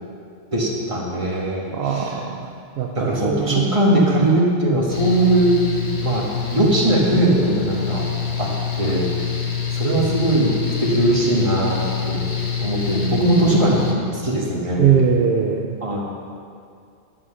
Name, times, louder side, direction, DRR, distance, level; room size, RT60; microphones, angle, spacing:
voice 1, 0.5-2.2 2.9-5.6 6.0-6.2 6.5-8.1 8.4-8.5 8.8-9.1 9.7-10.5 10.8-11.8 12.0-12.3 12.6-14.9 15.8-16.0, right 1 dB, 25° right, -3 dB, 1.6 m, -20 dB
voice 2, 1.7-2.5 2.8-3.7 10.0-10.1 14.8-15.8, right 7 dB, 60° right, 2 dB, 0.8 m, -20 dB
Mechanical fan, 4.9-13.9, left 6 dB, 40° left, 1.1 m, -26 dB
11.0 x 5.7 x 6.3 m, 2.4 s
omnidirectional pair, 1.2 m